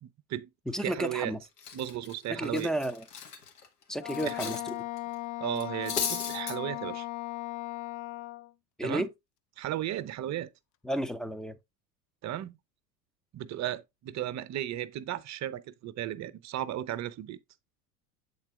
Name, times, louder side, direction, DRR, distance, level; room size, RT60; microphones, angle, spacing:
voice 1, 0.0-0.5 0.8-1.3 1.7-2.7 4.3-4.5 5.4-7.1 8.8-9.1 9.6-10.5 12.2-12.6 13.3-17.4, right 12 dB, 35° right, 0.8 m, -35 dB
voice 2, 0.7-1.4 2.3-3.1 3.9-4.8 8.8-9.1 10.8-11.6, equal, ahead, 0.5 m, -32 dB
Cutlery silverware, 1.0-1.2 1.6-4.7 5.0-5.1 5.6-6.6, left 6 dB, 90° left, 1.8 m, -36 dB
Wind instrument woodwind instrument, 4.0-8.5, left 19 dB, 45° left, 0.7 m, -37 dB
8.0 x 3.9 x 3.6 m
hypercardioid pair, 80°, 45 cm